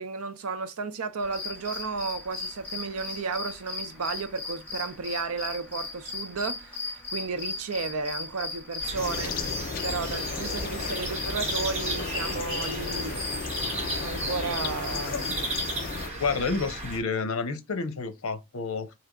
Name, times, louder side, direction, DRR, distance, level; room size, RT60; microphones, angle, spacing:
voice 1, 0.0-9.3 9.8-13.2 14.0-15.2, right 4 dB, 85° right, 0.6 m, -33 dB
sound 1, 1.2-15.7, left 3 dB, 5° left, 1.8 m, -37 dB
sound 2, 8.8-17.0, right 1 dB, 30° right, 1.3 m, -35 dB
sound 3, 9.0-16.1, left 5 dB, 40° left, 0.4 m, -35 dB
voice 2, 16.2-18.9, left 4 dB, 80° left, 0.7 m, -29 dB
3.3 x 2.8 x 3.7 m
head